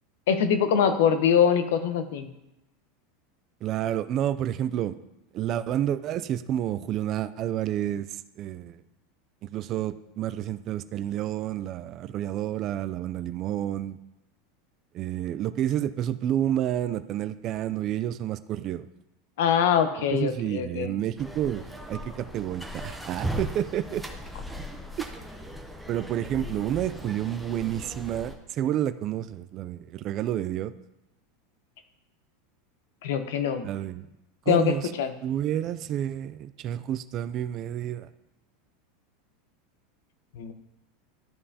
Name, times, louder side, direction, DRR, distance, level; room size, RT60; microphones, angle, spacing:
voice 1, 0.3-2.3 19.4-20.9 33.0-33.7 34.5-35.1 40.4-40.5, left 7 dB, 75° left, 9 dB, 0.8 m, -23 dB
voice 2, 3.6-5.0 5.3-8.8 9.5-14.0 14.9-18.9 20.1-21.6 21.9-24.0 25.0-25.1 25.9-30.7 33.6-34.1 34.5-34.9 35.2-38.1, right 11 dB, 30° right, 14 dB, 0.3 m, -29 dB
sound 1, 21.2-28.4, equal, ahead, 0.7 m, -38 dB
12.0 x 5.4 x 2.8 m, 0.92 s
supercardioid pair, 165°, 0 cm